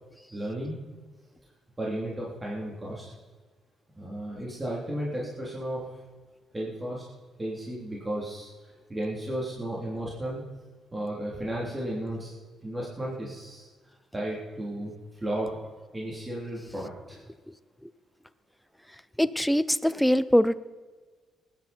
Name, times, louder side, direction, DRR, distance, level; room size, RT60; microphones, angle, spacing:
voice 1, 0.3-0.8 1.8-3.0 3.9-5.9 6.5-7.0 7.4-10.4 10.9-12.3 12.6-13.7 14.1-15.5 15.9-17.2, right 1 dB, 20° right, -5 dB, 3.6 m, -34 dB
voice 2, 19.2-20.5, equal, ahead, 14 dB, 0.6 m, -22 dB
19.5 x 10.5 x 4.5 m, 1.4 s
cardioid pair, 90°, 0 cm